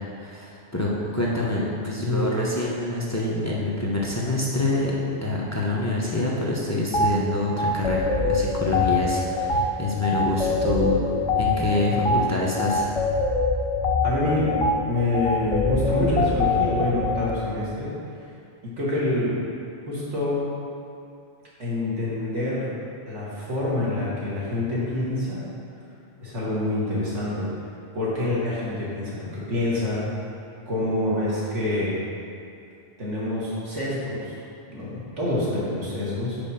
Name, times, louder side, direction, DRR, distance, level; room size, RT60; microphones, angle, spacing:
voice 1, 0.2-4.9 5.2-11.0 11.3-12.9, left 2 dB, 20° left, -5 dB, 0.6 m, -26 dB
voice 2, 1.9-2.3 11.9-12.2 14.0-17.9 18.2-18.3 18.8-19.3 19.9-20.4 21.6-22.7 23.1-25.4 26.2-27.5 27.9-30.1 30.7-32.0 33.0-34.4 34.7-36.4, left 2 dB, 80° right, -7 dB, 1.9 m, -26 dB
sound 1, 6.9-7.1 7.6-17.3, left 3 dB, 65° left, 0.3 m, -24 dB
5.3 x 4.6 x 5.6 m, 2.5 s
omnidirectional pair, 1.2 m